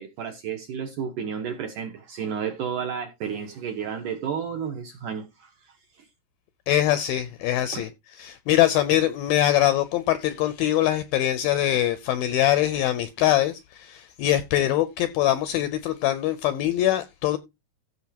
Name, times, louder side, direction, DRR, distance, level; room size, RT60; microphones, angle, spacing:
voice 1, 0.0-6.1 7.7-7.9, right 7 dB, 75° right, 1.9 m, -32 dB
voice 2, 6.7-7.9 8.2-17.4, left 13 dB, 80° left, 2.1 m, -23 dB
15.5 x 6.3 x 2.8 m
omnidirectional pair, 4.8 m